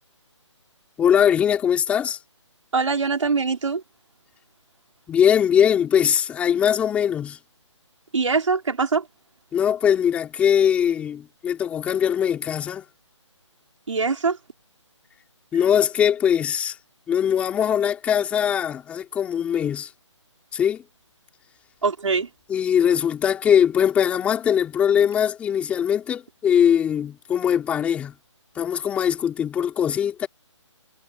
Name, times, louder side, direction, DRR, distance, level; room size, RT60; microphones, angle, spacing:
voice 1, 1.0-2.2 5.1-7.4 9.5-12.9 15.5-16.8 17.1-19.9 20.5-20.8 22.5-28.1 28.6-30.3, left 8 dB, 10° left, 3.8 m, -21 dB
voice 2, 2.7-3.8 8.1-9.0 13.9-14.4 21.8-22.3, right 4 dB, 75° right, 5.4 m, -22 dB
hypercardioid pair, 165°, 16 cm